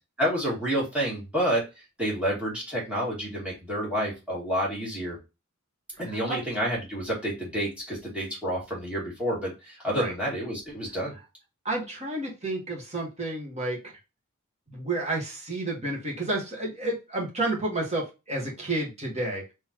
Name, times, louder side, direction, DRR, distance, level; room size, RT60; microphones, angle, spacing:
voice 1, 0.2-1.6 2.0-5.2 6.0-11.1, equal, 5° right, -5 dB, 2.2 m, -29 dB
voice 2, 11.6-13.8 14.7-19.4, right 2 dB, 30° right, -2 dB, 1.6 m, -30 dB
4.1 x 3.3 x 2.9 m, 0.27 s
head